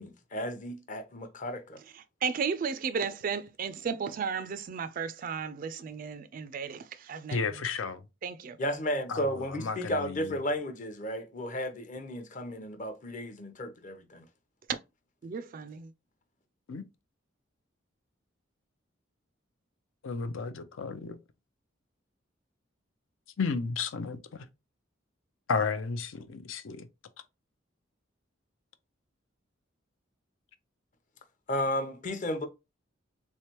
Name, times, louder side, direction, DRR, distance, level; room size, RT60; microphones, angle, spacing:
voice 1, 0.0-1.8 8.6-14.2 31.5-32.5, equal, 40° left, 0.7 m, -33 dB
voice 2, 2.2-7.4 8.2-8.6 14.7-14.8 15.2-15.9, right 6 dB, 45° right, 0.3 m, -34 dB
voice 3, 7.3-8.0 9.1-10.4 16.7-16.8 20.0-21.2 23.4-24.5 25.5-26.9, left 4 dB, 80° left, 0.5 m, -33 dB
3.6 x 3.2 x 2.9 m
head